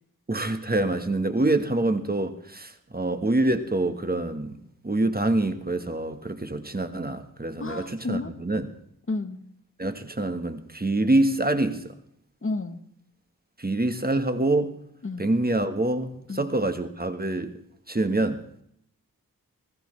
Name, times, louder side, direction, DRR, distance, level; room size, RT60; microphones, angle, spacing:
voice 1, 0.3-4.6 4.8-8.7 9.8-11.9 13.6-14.7 15.2-17.5 17.9-18.4, right 2 dB, 25° right, 8 dB, 1.3 m, -26 dB
voice 2, 7.6-8.3 9.1-9.4 12.4-12.8 15.0-15.2 16.3-16.4, left 3 dB, 35° left, 9 dB, 1.1 m, -31 dB
20.5 x 14.5 x 3.2 m, 0.71 s
wide cardioid pair, 65°, 36 cm